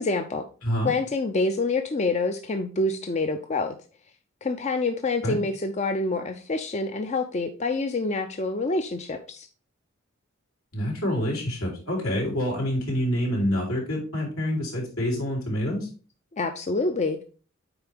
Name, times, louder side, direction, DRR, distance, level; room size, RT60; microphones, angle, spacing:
voice 1, 0.0-0.5 0.8-3.8 4.4-9.5 16.4-17.2, left 3 dB, 30° left, 6 dB, 0.5 m, -27 dB
voice 2, 0.6-0.9 5.2-5.4 10.7-15.9, equal, 80° left, -2 dB, 3.4 m, -27 dB
7.9 x 4.9 x 3.5 m, 0.37 s
head